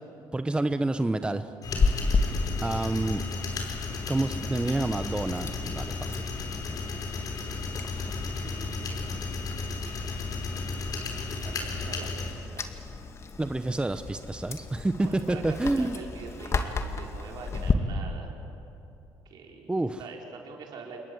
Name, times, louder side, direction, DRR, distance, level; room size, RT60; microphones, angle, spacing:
voice 1, 0.3-1.5 2.6-3.2 4.1-6.2 13.4-16.0 19.7-20.0, right 2 dB, 15° right, 10 dB, 0.9 m, -28 dB
sound 1, 1.6-12.3, left 4 dB, 55° left, 4.9 m, -34 dB
Chewing mastication, 1.7-17.7, left 4 dB, 40° left, 2.1 m, -34 dB
voice 2, 8.4-9.0 9.8-10.2 11.4-12.8 15.0-15.4 15.7-18.3 19.2-19.7 20.0-21.0, right 5 dB, 65° right, 1 dB, 4.8 m, -45 dB
28.5 x 21.5 x 8.0 m, 2.9 s
cardioid pair, 85°, 8 cm